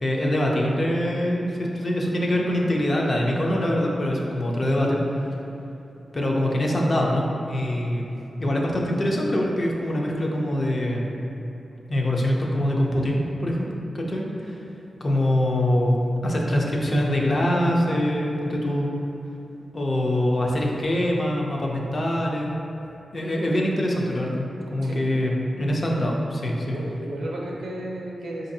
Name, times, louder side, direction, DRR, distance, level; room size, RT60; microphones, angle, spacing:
voice 1, 0.0-5.0 6.1-8.1 8.4-11.1 11.9-13.7 13.9-18.9 19.7-22.6 23.1-26.8, left 1 dB, 35° left, -2 dB, 0.4 m, -24 dB
voice 2, 26.6-28.5, right 1 dB, 80° right, -3 dB, 0.6 m, -33 dB
4.5 x 2.5 x 2.6 m, 2.9 s
wide cardioid pair, 155°, 0 cm